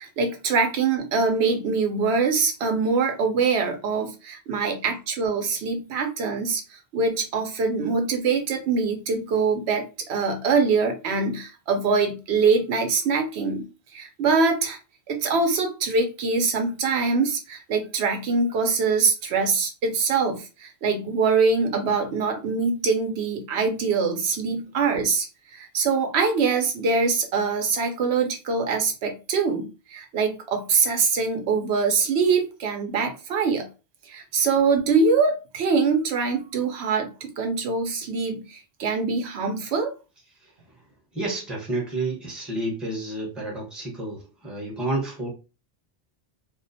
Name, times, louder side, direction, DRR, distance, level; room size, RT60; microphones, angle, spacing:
voice 1, 0.0-13.7 13.9-14.8 15.1-33.7 34.1-39.9, right 4 dB, 80° right, 0.8 m, -24 dB
voice 2, 41.1-45.3, right 2 dB, ahead, 0.8 m, -30 dB
2.3 x 2.2 x 2.6 m
omnidirectional pair, 1.1 m